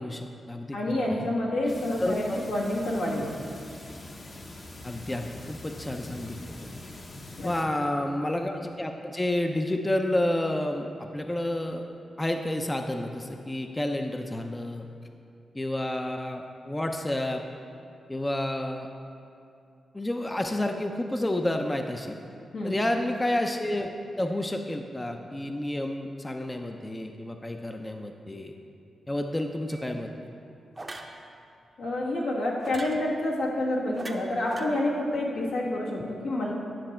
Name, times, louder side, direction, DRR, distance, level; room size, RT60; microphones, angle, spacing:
voice 1, 0.0-1.3 2.0-2.4 4.8-6.8 7.4-11.8 12.2-14.9 15.5-17.4 18.1-18.9 19.9-22.2 22.6-23.9 24.2-28.5 29.1-30.1, left 1 dB, 20° left, 4 dB, 0.5 m, -30 dB
voice 2, 0.7-3.3 7.4-7.5 22.5-22.7 31.8-36.5, left 1 dB, 85° left, -5 dB, 1.6 m, -28 dB
sound 1, 1.7-7.6, left 1 dB, 45° left, 0.9 m, -43 dB
sound 2, 29.7-29.9 30.8-31.2 32.6-33.0 33.9-34.7, right 2 dB, 30° right, 0.7 m, -40 dB
10.0 x 5.9 x 4.3 m, 2.5 s
cardioid pair, 70°, 0 cm